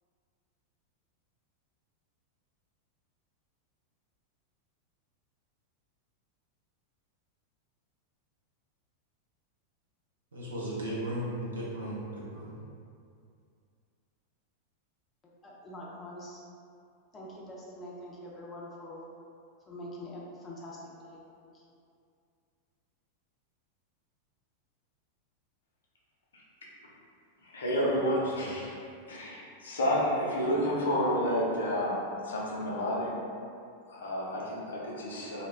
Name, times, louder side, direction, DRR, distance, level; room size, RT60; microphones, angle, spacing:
voice 1, 10.3-12.5 28.4-28.5, right 1 dB, 70° right, -7 dB, 0.7 m, -36 dB
voice 2, 15.4-16.4 17.1-19.1 19.7-21.6, left 1 dB, 20° left, -4 dB, 0.5 m, -44 dB
voice 3, 27.4-28.8 29.1-33.1 33.9-35.5, equal, 65° left, -4 dB, 0.5 m, -30 dB
2.3 x 2.2 x 3.2 m, 2.4 s
figure-of-eight pair, 90°, 0 cm